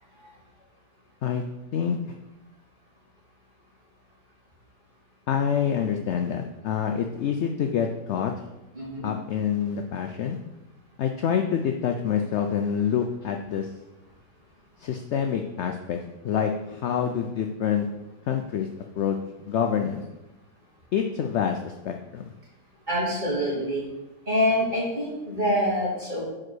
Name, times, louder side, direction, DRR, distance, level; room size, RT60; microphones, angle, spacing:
voice 1, 5.3-8.5 9.0-10.4 11.0-13.7 14.8-17.9 18.3-18.7 19.0-19.2 19.4-20.0 20.9-22.3, left 8 dB, 75° left, 4 dB, 0.6 m, -27 dB
voice 2, 8.7-9.1 22.9-23.9 24.3-26.2, equal, 25° right, -7 dB, 3.0 m, -25 dB
4.9 x 4.9 x 6.1 m, 1.0 s
omnidirectional pair, 1.7 m